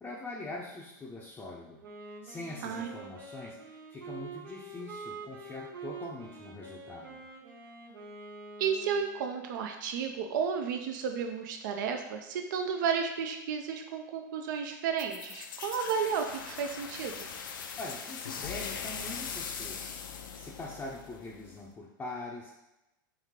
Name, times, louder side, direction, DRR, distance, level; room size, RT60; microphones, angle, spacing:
voice 1, 0.0-7.2 17.8-20.0 20.3-22.6, left 2 dB, 15° left, -5 dB, 0.5 m, -43 dB
Wind instrument woodwind instrument, 1.8-9.4, right 3 dB, 85° right, 0.8 m, -46 dB
voice 2, 8.6-17.3, right 6 dB, 70° right, 4 dB, 0.4 m, -32 dB
sound 1, 15.0-21.6, left 6 dB, 85° left, 0.5 m, -41 dB
3.4 x 3.1 x 3.6 m, 0.93 s
hypercardioid pair, 125°, 11 cm